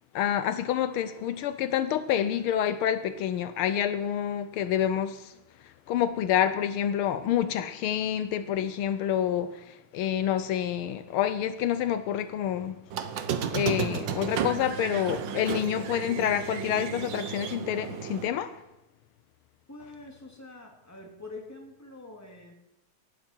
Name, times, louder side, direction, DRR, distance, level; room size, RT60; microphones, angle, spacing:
voice 1, 0.1-5.3 5.9-12.8 13.4-18.5, left 10 dB, 80° left, 12 dB, 1.5 m, -28 dB
Squeak, 12.9-18.3, right 7 dB, 65° right, 1.5 m, -33 dB
voice 2, 19.7-22.5, left 2 dB, 5° left, 1 dB, 2.4 m, -45 dB
18.0 x 12.5 x 4.5 m, 0.96 s
omnidirectional pair, 2.4 m